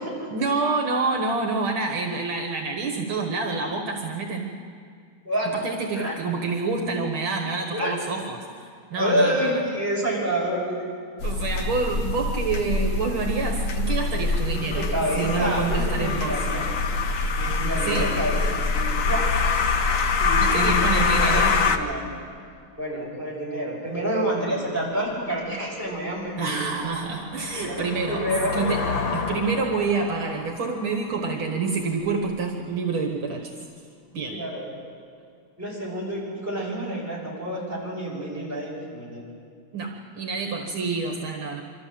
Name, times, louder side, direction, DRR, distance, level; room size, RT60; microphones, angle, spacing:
voice 1, 0.3-4.5 5.6-9.6 11.2-14.9 15.2-16.5 17.9-18.1 20.4-21.5 26.4-28.2 28.5-28.8 29.1-33.5 34.1-34.4 39.7-41.6, right 4 dB, 70° right, 2 dB, 2.2 m, -27 dB
voice 2, 8.9-10.9 14.4-16.7 17.4-19.3 20.2-22.0 22.8-26.6 27.5-28.6 34.3-34.7 35.6-39.2, equal, 5° right, -6 dB, 6.3 m, -28 dB
sound 1, 11.2-21.8, left 4 dB, 50° left, 1.0 m, -24 dB
sound 2, 25.1-25.2 25.7-32.3, left 4 dB, 85° left, 2.5 m, -33 dB
25.0 x 13.5 x 7.6 m, 2.1 s
omnidirectional pair, 2.4 m